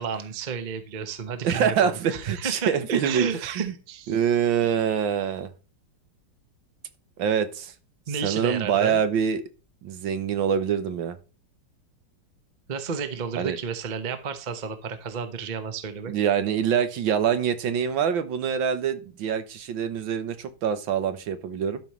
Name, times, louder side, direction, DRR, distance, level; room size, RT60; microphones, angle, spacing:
voice 1, 0.0-4.1 8.1-9.0 12.7-16.1, right 6 dB, 35° right, 0.7 m, -32 dB
voice 2, 1.4-3.3 3.6-3.7 4.1-5.5 7.2-7.7 8.2-9.4 9.8-11.2 13.4-13.6 16.1-21.8, right 8 dB, 70° right, 1.6 m, -25 dB
12.5 x 5.3 x 3.0 m
omnidirectional pair, 2.3 m